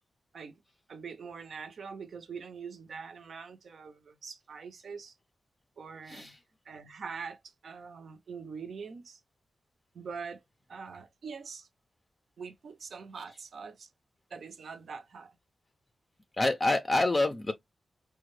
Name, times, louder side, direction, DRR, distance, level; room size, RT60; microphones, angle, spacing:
voice 1, 0.9-5.1 5.8-6.3 6.7-9.2 9.9-10.4 10.7-11.7 12.4-13.9 14.3-15.3, right 5 dB, 60° right, 0.7 m, -43 dB
voice 2, 6.1-6.4 16.4-17.5, left 2 dB, 25° left, 0.5 m, -27 dB
4.9 x 2.2 x 3.1 m
wide cardioid pair, 175°, 0 cm